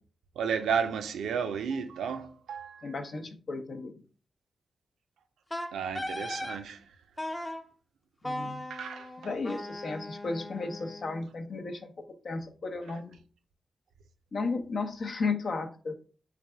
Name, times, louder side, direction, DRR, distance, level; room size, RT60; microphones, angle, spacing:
voice 1, 0.4-2.9 5.7-6.8 8.7-9.1, right 6 dB, 85° right, 0.4 m, -32 dB
voice 2, 2.8-4.0 8.2-8.6 9.2-11.9 12.2-13.2 14.3-16.0, left 3 dB, 65° left, 0.7 m, -34 dB
Wind instrument woodwind instrument, 5.5-6.6 7.2-7.6 8.2-11.2, left 1 dB, 20° left, 0.6 m, -38 dB
3.3 x 2.5 x 4.4 m
supercardioid pair, 45°, 0 cm